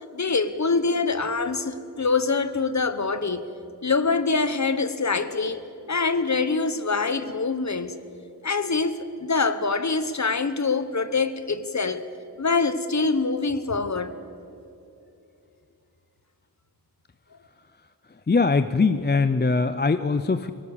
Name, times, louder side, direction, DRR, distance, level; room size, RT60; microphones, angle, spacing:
voice 1, 0.1-3.4 3.8-5.6 5.9-7.9 8.4-9.0 9.2-12.0 12.4-14.1, left 4 dB, 45° left, 1.1 m, -24 dB
voice 2, 18.3-20.5, left 4 dB, 25° left, 0.6 m, -21 dB
22.0 x 19.0 x 7.2 m
wide cardioid pair, 80°, 39 cm